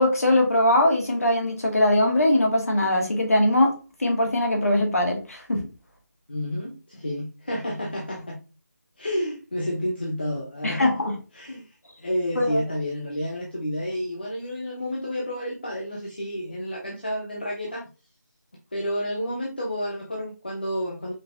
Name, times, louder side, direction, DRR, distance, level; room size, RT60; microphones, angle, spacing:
voice 1, 0.0-5.6 10.6-11.1 12.4-12.6, left 1 dB, 50° left, 1 dB, 1.5 m, -21 dB
voice 2, 6.3-8.4 9.0-10.9 11.3-17.9 18.7-21.1, equal, 30° left, -2 dB, 0.6 m, -30 dB
5.1 x 3.2 x 2.4 m, 0.32 s
figure-of-eight pair, 180°, 10 cm